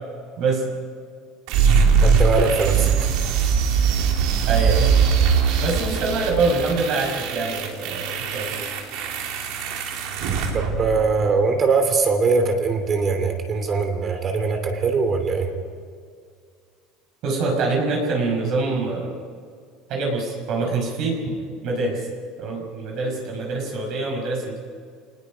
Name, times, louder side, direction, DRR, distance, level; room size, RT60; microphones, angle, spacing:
sound 1, 1.5-11.4, right 6 dB, 70° right, 3.3 m, -21 dB
voice 1, 2.0-2.9 10.5-15.5, right 4 dB, 30° right, 6 dB, 3.0 m, -21 dB
voice 2, 4.5-4.9 5.6-8.6 17.2-19.2 19.9-21.2 21.6-22.1 22.4-24.6, right 3 dB, 50° right, 0 dB, 5.3 m, -25 dB
28.0 x 19.5 x 5.3 m, 2.1 s
cardioid pair, 150°, 0 cm